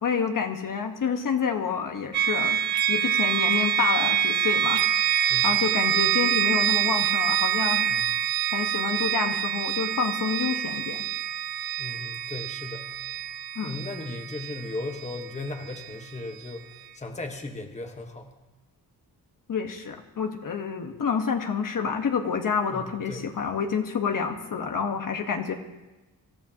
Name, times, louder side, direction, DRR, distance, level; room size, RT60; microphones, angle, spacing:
voice 1, 0.0-2.6 2.9-4.8 5.4-7.9 8.5-11.0 13.5-13.7 19.5-25.5, left 6 dB, 55° left, 4 dB, 1.3 m, -28 dB
sound 1, 2.1-15.9, right 10 dB, 90° right, 1.0 m, -26 dB
voice 2, 11.8-12.9 13.6-16.7 16.9-18.3 22.7-23.2, left 2 dB, 20° left, 3 dB, 1.2 m, -36 dB
26.0 x 14.0 x 2.9 m, 1.1 s
wide cardioid pair, 155°, 38 cm